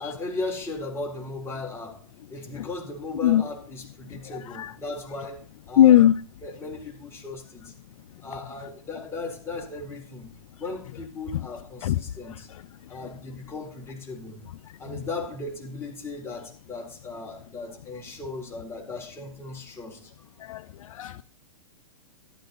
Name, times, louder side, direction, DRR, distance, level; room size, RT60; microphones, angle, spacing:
voice 1, 0.0-6.0 6.4-7.7 8.2-10.3 10.6-12.5 12.9-14.4 14.8-20.1, left 3 dB, 15° left, 4.0 m, -37 dB
voice 2, 5.8-6.2 11.8-12.0 20.4-20.6 20.9-21.2, left 11 dB, 65° left, 0.6 m, -18 dB
13.0 x 12.0 x 4.1 m
hypercardioid pair, 135°, 18 cm